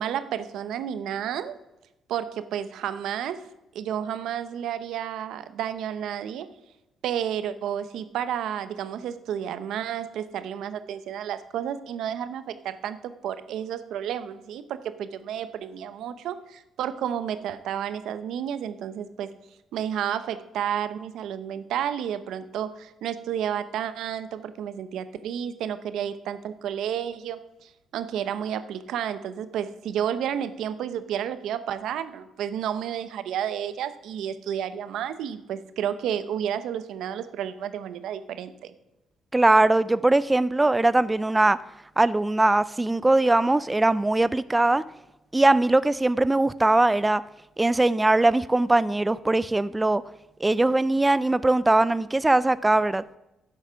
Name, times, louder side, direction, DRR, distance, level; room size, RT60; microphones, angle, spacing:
voice 1, 0.0-1.5 2.1-3.4 3.7-6.5 7.0-19.3 19.7-38.7, right 9 dB, 80° right, 13 dB, 0.8 m, -31 dB
voice 2, 39.3-41.6 42.0-44.8 45.3-47.2 47.6-50.0 50.4-53.0, right 2 dB, 15° right, 17 dB, 0.3 m, -21 dB
11.0 x 7.9 x 5.7 m, 0.91 s
cardioid pair, 90°, 0 cm